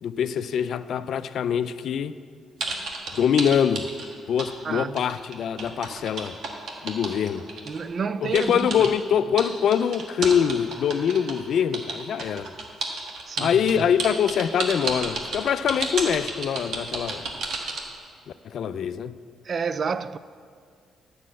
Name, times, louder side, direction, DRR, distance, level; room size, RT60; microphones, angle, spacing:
voice 1, 0.0-2.2 3.2-3.9 4.3-6.4 6.8-7.5 8.2-12.5 13.4-17.2 18.4-19.2, left 8 dB, 65° left, 0.4 m, -24 dB
sound 1, 2.6-4.5 4.8-7.8 8.3-8.9 9.4-11.4 11.7-17.9, right 3 dB, 70° right, 1.4 m, -31 dB
voice 2, 4.6-5.0 7.7-8.9 13.3-13.6 19.5-20.2, right 5 dB, 45° right, 0.3 m, -29 dB
9.7 x 6.2 x 7.5 m
cardioid pair, 90°, 0 cm